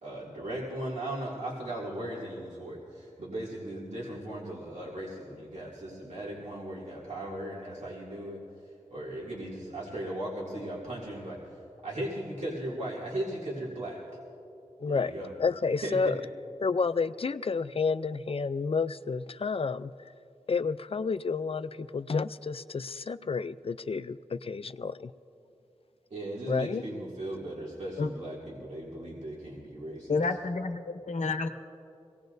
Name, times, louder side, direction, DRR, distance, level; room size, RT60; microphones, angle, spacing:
voice 1, 0.0-8.4 8.9-14.0 14.9-15.3 15.8-16.2 26.1-30.3, right 1 dB, 75° right, -6 dB, 2.4 m, -37 dB
voice 2, 14.8-15.1 15.4-16.2 16.6-19.9 20.5-25.1 26.5-26.8, left 4 dB, 50° left, 14 dB, 0.4 m, -30 dB
voice 3, 30.1-31.5, left 3 dB, 80° left, 7 dB, 0.8 m, -29 dB
23.5 x 18.0 x 2.6 m, 2.7 s
wide cardioid pair, 50°, 12 cm